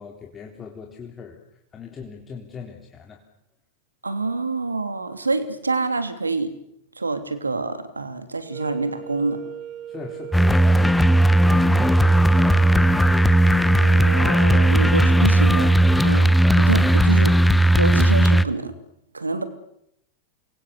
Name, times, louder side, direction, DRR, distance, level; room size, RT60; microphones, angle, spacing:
voice 1, 0.0-3.2 9.9-12.9, left 5 dB, 25° left, 1 dB, 3.9 m, -40 dB
voice 2, 4.0-6.5 7.0-9.4 13.8-15.7 16.0-17.4 17.7-18.7 19.1-19.4, right 3 dB, 80° right, 11 dB, 3.1 m, -26 dB
sound 1, 8.4-16.6, right 12 dB, 40° right, 1.9 m, -37 dB
sound 2, 10.3-18.5, right 1 dB, 5° left, 1.2 m, -16 dB
28.5 x 23.5 x 8.3 m, 0.76 s
figure-of-eight pair, 90°, 0 cm